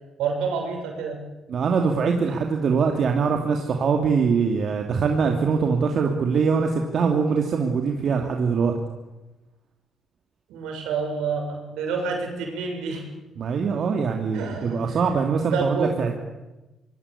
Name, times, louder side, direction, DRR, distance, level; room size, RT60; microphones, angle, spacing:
voice 1, 0.2-1.2 10.5-13.1 14.3-15.0 15.5-15.9, right 5 dB, 80° right, 2 dB, 7.2 m, -28 dB
voice 2, 1.5-8.7 13.4-16.1, right 5 dB, 60° right, 3 dB, 3.0 m, -23 dB
24.5 x 22.0 x 8.5 m, 1.1 s
supercardioid pair, 55°, 0 cm